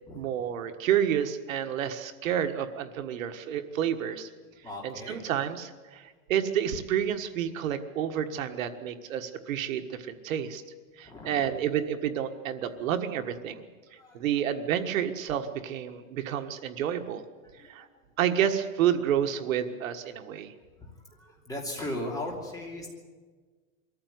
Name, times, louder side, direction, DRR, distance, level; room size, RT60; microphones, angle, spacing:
voice 1, 0.1-4.3 4.8-10.6 11.0-13.7 14.1-17.2 17.7-17.9 18.2-20.5, right 9 dB, 75° right, 8 dB, 1.6 m, -29 dB
voice 2, 4.6-5.2 11.0-11.5 12.7-12.8 14.0-14.4 17.5-17.9 20.8-22.9, left 1 dB, 10° left, 0 dB, 3.0 m, -38 dB
23.0 x 14.5 x 9.5 m, 1.4 s
supercardioid pair, 175°, 41 cm